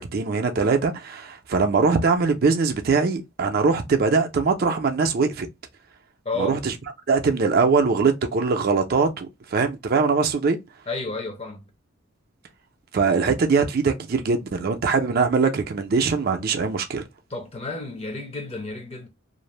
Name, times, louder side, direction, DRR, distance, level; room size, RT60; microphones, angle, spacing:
voice 1, 0.0-5.5 6.4-6.7 7.1-10.6 12.9-17.0, right 4 dB, 50° right, 0.4 m, -22 dB
voice 2, 6.2-6.6 10.9-11.7 17.3-19.1, left 3 dB, 30° left, 0.6 m, -31 dB
2.5 x 2.0 x 2.9 m
head